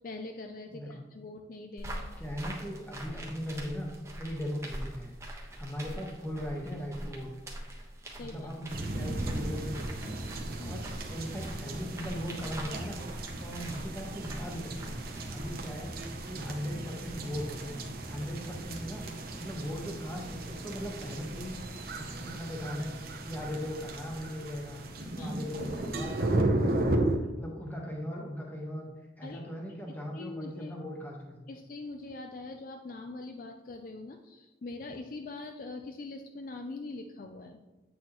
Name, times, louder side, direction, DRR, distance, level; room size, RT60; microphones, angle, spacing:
voice 1, 0.0-2.2 8.2-8.5 10.6-10.8 25.2-25.4 29.2-29.5 30.1-30.7 31.5-37.6, left 2 dB, 45° left, 5 dB, 0.4 m, -43 dB
voice 2, 0.7-1.0 2.2-3.9 4.2-5.1 5.6-7.3 8.2-10.2 10.6-10.8 11.1-13.0 13.4-15.0 15.3-15.9 16.2-17.8 18.1-19.1 19.3-21.6 21.9-22.9 23.2-24.8 25.1-27.1 27.4-28.9 29.2-31.4, equal, 10° left, -1 dB, 1.2 m, -38 dB
sound 1, 1.8-15.7, right 1 dB, 15° right, 1.1 m, -44 dB
sound 2, 8.7-27.2, right 2 dB, 55° right, 0.8 m, -35 dB
8.2 x 6.2 x 3.0 m, 1.1 s
head